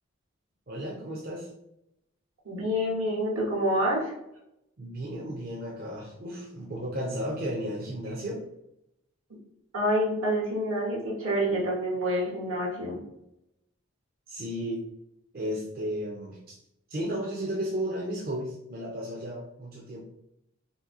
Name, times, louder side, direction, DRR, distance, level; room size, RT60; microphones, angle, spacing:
voice 1, 0.7-1.5 4.8-8.4 14.3-14.8 15.3-16.6 16.9-20.0, equal, 45° right, -3 dB, 0.5 m, -34 dB
voice 2, 2.4-4.1 9.7-13.0, equal, 75° right, -2 dB, 1.2 m, -27 dB
2.8 x 2.6 x 3.6 m, 0.82 s
head